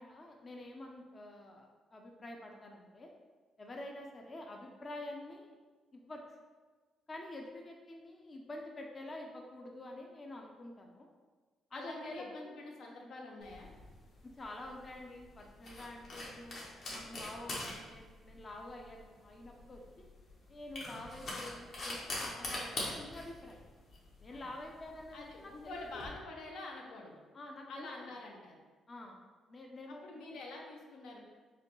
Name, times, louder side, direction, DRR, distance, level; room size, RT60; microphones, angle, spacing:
voice 1, 0.0-3.1 3.6-5.6 5.9-6.2 7.1-11.1 11.7-12.5 14.4-20.0 20.5-23.6 24.2-26.1 27.3-28.1 28.9-29.2 29.5-30.4, left 1 dB, 35° left, 1 dB, 0.5 m, -48 dB
voice 2, 11.7-13.7 24.3-24.5 25.1-27.2 27.7-28.6 29.9-31.2, left 2 dB, 80° left, 0 dB, 0.6 m, -47 dB
sound 1, 13.4-26.1, left 1 dB, 60° left, 1.1 m, -44 dB
4.8 x 2.2 x 3.0 m, 1.4 s
cardioid pair, 90°, 0 cm